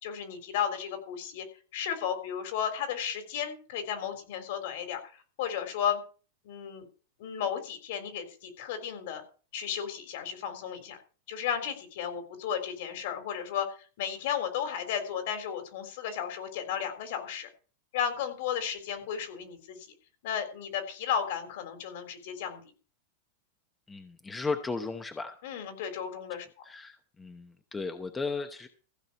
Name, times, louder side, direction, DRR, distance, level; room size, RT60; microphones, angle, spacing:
voice 1, 0.0-1.5 1.7-5.1 5.4-6.0 6.4-6.9 7.2-9.2 9.5-11.0 11.3-17.5 17.9-19.9 20.2-22.6 25.4-26.5, left 8 dB, 60° left, 7 dB, 3.7 m, -34 dB
voice 2, 23.9-25.4 26.6-28.7, left 4 dB, 10° left, 7 dB, 0.9 m, -35 dB
15.5 x 6.1 x 7.1 m, 0.37 s
supercardioid pair, 165°, 0 cm